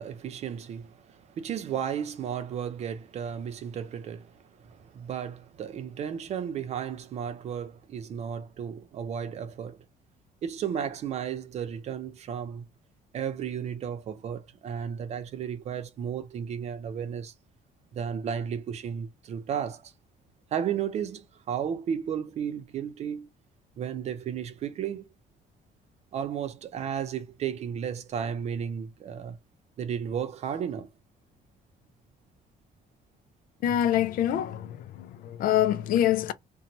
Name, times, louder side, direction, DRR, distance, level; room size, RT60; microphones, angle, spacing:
voice 1, 0.0-9.8 10.4-12.7 13.1-17.3 17.9-19.9 20.5-23.3 23.8-25.1 26.1-29.4 29.8-30.9, right 8 dB, 45° right, 0.5 m, -34 dB
voice 2, 33.6-36.3, left 11 dB, 65° left, 0.4 m, -25 dB
2.6 x 2.2 x 2.9 m
cardioid pair, 155°, 16 cm